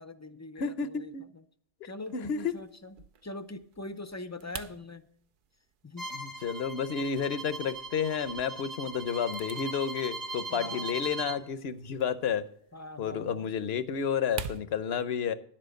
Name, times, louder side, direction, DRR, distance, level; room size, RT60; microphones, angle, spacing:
voice 1, 0.0-1.4 1.8-2.9 3.2-5.1 5.8-6.1 10.5-11.0 12.7-13.5, left 2 dB, 20° left, 12 dB, 0.4 m, -43 dB
voice 2, 0.6-1.2 1.8-2.5 6.1-12.4 13.0-15.3, left 7 dB, 75° left, 14 dB, 1.0 m, -31 dB
sound 1, 2.0-14.6, right 7 dB, 60° right, 0.7 m, -49 dB
Bowed string instrument, 6.0-11.4, right 2 dB, 40° right, 1.3 m, -39 dB
11.0 x 7.6 x 6.5 m, 0.63 s
omnidirectional pair, 1.1 m